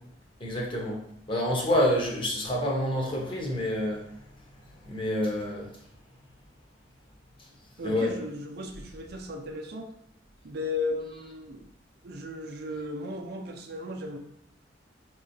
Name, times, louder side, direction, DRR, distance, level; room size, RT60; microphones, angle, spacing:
voice 1, 0.4-1.0 1.3-4.0 4.9-5.7 7.8-8.1, left 1 dB, 30° left, -2 dB, 0.9 m, -27 dB
voice 2, 7.8-9.9 10.4-11.7 12.0-14.2, left 2 dB, 60° right, 2 dB, 0.5 m, -35 dB
4.7 x 3.0 x 2.6 m, 0.73 s
head